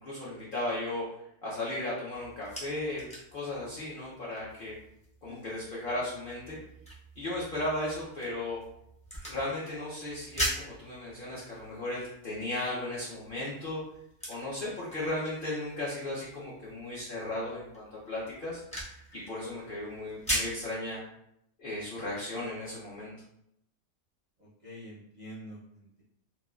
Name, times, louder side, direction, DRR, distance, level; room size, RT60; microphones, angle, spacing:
voice 1, 0.0-1.0 1.4-4.8 5.2-6.6 7.2-8.6 9.2-13.8 14.3-18.6 19.1-21.0 21.6-23.1, left 1 dB, 60° left, -7 dB, 0.6 m, -36 dB
sound 1, 2.1-20.7, equal, 10° left, 0.3 m, -42 dB
voice 2, 24.4-26.0, equal, 55° right, -8 dB, 0.5 m, -47 dB
3.0 x 2.2 x 2.3 m, 0.78 s
omnidirectional pair, 1.5 m